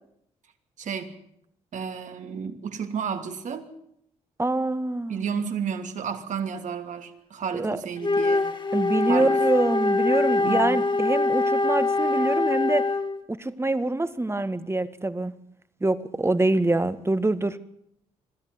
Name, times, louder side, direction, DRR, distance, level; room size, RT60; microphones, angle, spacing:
voice 1, 0.8-1.2 1.7-3.7 5.1-8.5 9.0-9.3 10.4-10.7, right 7 dB, 60° right, 7 dB, 2.9 m, -32 dB
voice 2, 4.4-5.2 7.5-7.8 8.7-12.9 13.3-15.3 15.8-17.6, right 2 dB, 20° right, 13 dB, 1.8 m, -25 dB
Wind instrument woodwind instrument, 8.0-13.2, left 3 dB, 35° left, 2.0 m, -24 dB
25.5 x 13.5 x 9.7 m, 0.74 s
hypercardioid pair, 55°, 14 cm